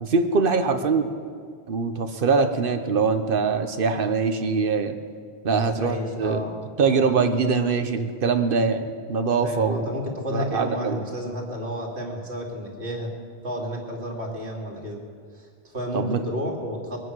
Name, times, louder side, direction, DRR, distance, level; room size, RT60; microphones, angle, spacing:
voice 1, 0.0-1.1 1.7-4.9 5.4-6.5 6.8-9.9 10.3-11.0 15.9-16.2, right 4 dB, 55° right, 7 dB, 1.2 m, -23 dB
voice 2, 5.5-6.6 9.4-13.1 13.4-15.0 15.3-17.0, equal, 80° right, -1 dB, 2.8 m, -31 dB
22.5 x 9.1 x 6.3 m, 2.1 s
omnidirectional pair, 1.1 m